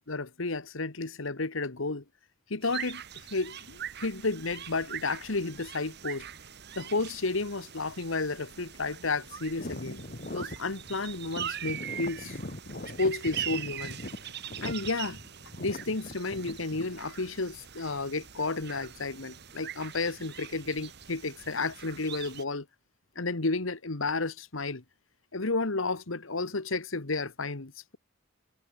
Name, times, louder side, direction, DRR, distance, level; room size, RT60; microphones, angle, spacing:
voice 1, 0.0-2.0 2.5-3.0 3.3-6.3 6.8-10.0 10.3-12.4 13.0-14.0 14.6-15.2 15.6-22.6 23.1-24.8 25.3-28.0, left 3 dB, 70° left, 1.6 m, -32 dB
sound 1, 2.6-22.4, right 10 dB, 55° right, 1.6 m, -42 dB
sound 2, 9.6-17.0, left 1 dB, 45° left, 2.0 m, -41 dB
head